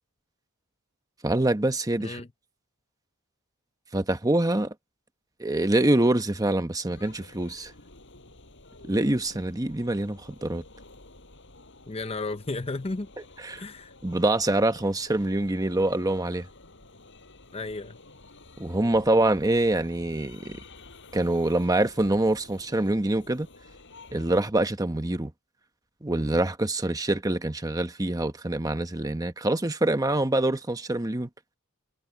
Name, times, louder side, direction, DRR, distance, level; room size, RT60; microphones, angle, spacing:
voice 1, 1.2-2.2 3.9-4.7 5.4-7.7 8.8-10.6 13.4-13.6 14.0-16.5 18.6-20.6 21.1-23.5 24.1-25.3 26.0-31.3, right 1 dB, 15° right, 1.0 m, -25 dB
sound 1, 6.9-24.4, left 2 dB, 60° left, 7.6 m, -51 dB
voice 2, 11.9-13.1 13.6-13.9 17.5-18.0, left 3 dB, 30° left, 0.7 m, -33 dB
head